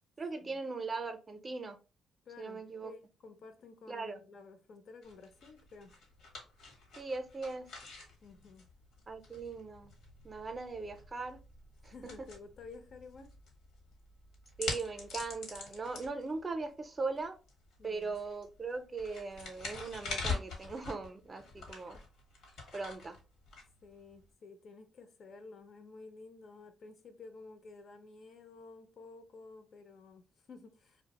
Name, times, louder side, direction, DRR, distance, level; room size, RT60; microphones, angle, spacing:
voice 1, 0.2-1.8 2.4-2.9 3.9-4.2 7.0-7.7 9.1-9.9 10.2-11.4 11.8-11.9 14.6-17.4 17.8-22.0 22.7-23.2, right 3 dB, 30° right, 0.4 m, -39 dB
voice 2, 2.3-5.9 8.2-8.7 11.9-13.4 17.8-18.2 23.8-31.0, left 4 dB, 60° left, 0.5 m, -52 dB
sound 1, 5.0-24.3, left 3 dB, 80° left, 0.9 m, -45 dB
2.3 x 2.0 x 2.8 m
cardioid pair, 90°, 0 cm